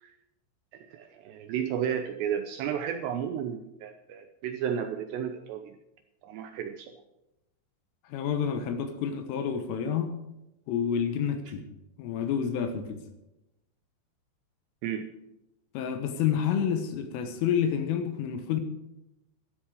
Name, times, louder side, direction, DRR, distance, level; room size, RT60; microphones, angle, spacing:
voice 1, 0.7-5.8 6.2-6.9 14.8-15.1, right 8 dB, 80° right, 7 dB, 2.6 m, -33 dB
voice 2, 8.1-10.1 10.7-11.7 12.0-13.0 15.8-18.6, left 8 dB, 80° left, 7 dB, 3.8 m, -29 dB
13.0 x 12.5 x 4.9 m, 0.90 s
omnidirectional pair, 5.7 m